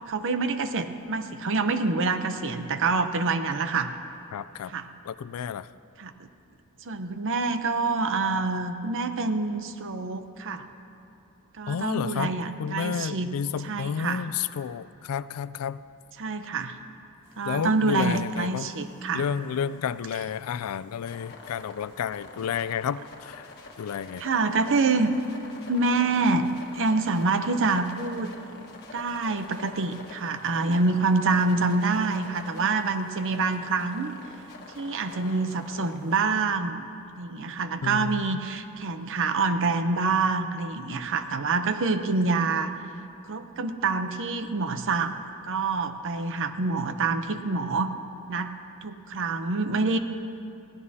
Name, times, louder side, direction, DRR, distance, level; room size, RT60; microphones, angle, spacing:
voice 1, 0.0-3.9 4.7-4.9 6.0-6.1 6.9-10.6 11.6-13.3 13.6-14.2 16.2-16.8 17.4-19.3 24.2-25.1 25.7-26.5 26.7-28.3 28.9-34.2 34.7-36.9 37.2-42.7 43.3-45.1 45.5-47.9 48.3-48.5 48.8-50.0, right 3 dB, 60° right, 9 dB, 0.7 m, -26 dB
voice 2, 4.3-4.7 5.0-5.7 11.7-12.3 12.6-15.8 17.4-18.7 19.1-23.5 23.8-24.2 37.8-38.4, left 7 dB, 75° left, 16 dB, 0.4 m, -31 dB
sound 1, 17.2-36.4, left 3 dB, 50° left, 1.5 m, -47 dB
20.5 x 16.0 x 2.8 m, 2.7 s
head